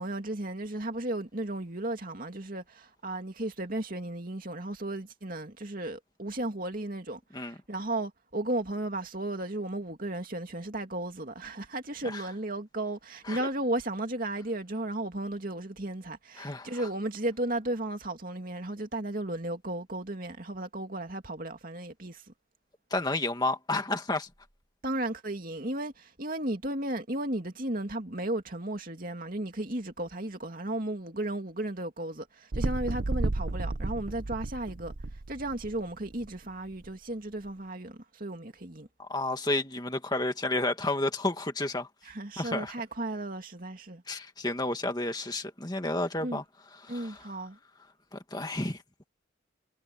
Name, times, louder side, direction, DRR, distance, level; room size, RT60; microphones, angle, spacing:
voice 1, 0.0-22.2 24.8-34.9 35.3-38.9 42.0-44.0 46.2-46.4 46.9-47.6, right 1 dB, 45° right, 2.6 m, -34 dB
voice 2, 16.4-16.9 22.9-24.3 39.0-41.9 42.4-42.7 44.1-46.4 46.8-47.2 48.1-48.8, left 2 dB, 20° left, 2.0 m, -31 dB
sound 1, 32.5-36.3 36.8-36.9, right 2 dB, 65° right, 0.8 m, -33 dB
head